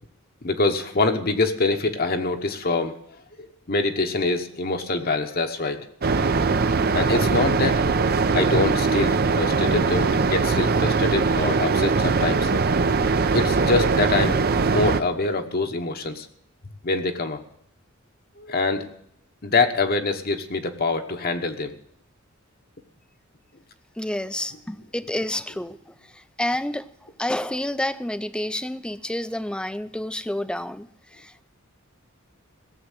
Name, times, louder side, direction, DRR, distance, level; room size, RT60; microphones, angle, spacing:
voice 1, 0.4-3.0 3.4-5.9 6.9-7.8 8.3-12.5 13.3-14.4 14.6-16.3 16.8-17.4 18.4-18.9 19.4-21.7, left 3 dB, 45° left, 1.1 m, -24 dB
sound 1, 6.0-15.0, right 4 dB, 50° right, 0.6 m, -21 dB
voice 2, 24.0-25.8 26.4-26.9 27.2-30.9 31.2-31.4, left 1 dB, 5° left, 0.4 m, -29 dB
17.0 x 7.4 x 7.4 m
head